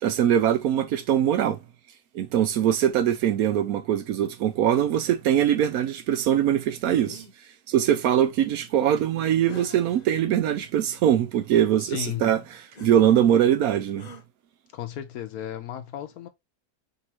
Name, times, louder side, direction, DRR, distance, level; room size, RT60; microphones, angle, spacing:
voice 1, 0.0-1.6 2.1-7.2 7.7-12.4 12.8-14.1, right 10 dB, 70° right, 1.0 m, -22 dB
sound 1, 6.9-7.3 9.5-10.1 10.8-10.9 12.7-13.0 14.0-14.2, left 3 dB, 35° left, 0.7 m, -44 dB
voice 2, 11.8-12.3 14.7-16.3, left 10 dB, 70° left, 1.0 m, -34 dB
5.4 x 2.7 x 2.8 m
omnidirectional pair, 1.7 m